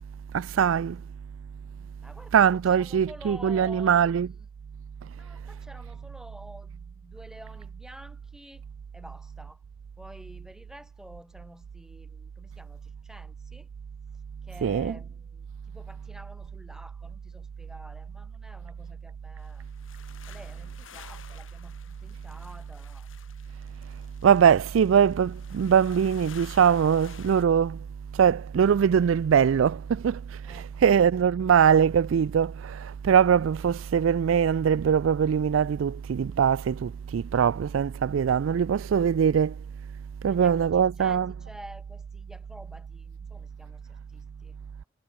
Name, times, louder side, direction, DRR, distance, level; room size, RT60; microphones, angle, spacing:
voice 1, 0.3-1.0 2.3-4.3 14.6-15.0 24.2-27.8 28.1-39.5 40.2-41.3, right 8 dB, 80° right, 0.4 m, -22 dB
voice 2, 2.0-4.5 5.1-8.6 8.9-9.6 10.0-13.7 14.4-19.6 20.3-23.1 30.4-30.9 40.2-44.6, equal, 5° right, 6.7 m, -49 dB
sound 1, 19.4-27.4, left 7 dB, 85° left, 6.2 m, -51 dB
head